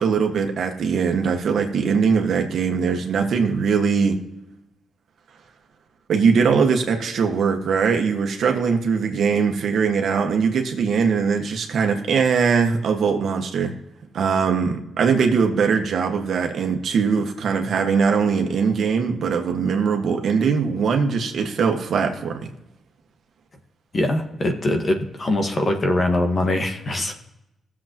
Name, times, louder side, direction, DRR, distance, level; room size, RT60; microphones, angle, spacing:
voice 1, 0.0-4.2 6.1-13.7 14.1-22.4, right 5 dB, 70° right, 4 dB, 1.6 m, -21 dB
voice 2, 23.9-27.1, left 1 dB, 40° left, 4 dB, 1.6 m, -22 dB
18.5 x 7.4 x 3.0 m, 0.87 s
cardioid pair, 110°, 0 cm